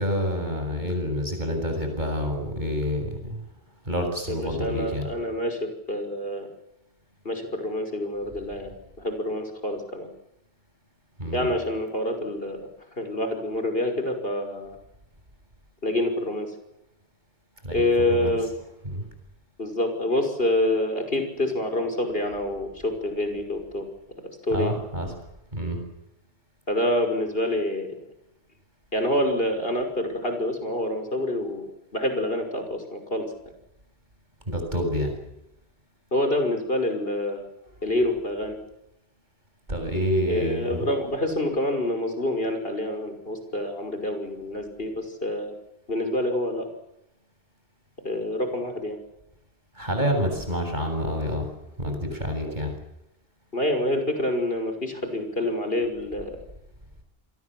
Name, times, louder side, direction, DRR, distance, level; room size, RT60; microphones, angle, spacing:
voice 1, 0.0-3.4 3.8-5.1 11.2-11.5 17.6-18.4 18.8-19.0 24.5-25.1 25.5-25.8 34.5-35.1 39.7-40.8 49.7-51.5 51.8-52.7, equal, 45° right, 5 dB, 7.8 m, -28 dB
voice 2, 4.3-6.5 7.2-8.7 9.0-10.1 11.3-12.6 13.0-14.8 15.8-16.5 17.7-18.5 19.6-23.8 24.4-24.7 26.7-27.9 28.9-31.7 31.9-33.3 36.1-37.5 37.8-38.6 40.3-45.5 45.9-46.7 48.0-49.0 52.5-52.6 53.5-56.4, left 1 dB, 65° left, 6 dB, 6.0 m, -27 dB
29.5 x 22.5 x 7.7 m, 0.86 s
omnidirectional pair, 1.1 m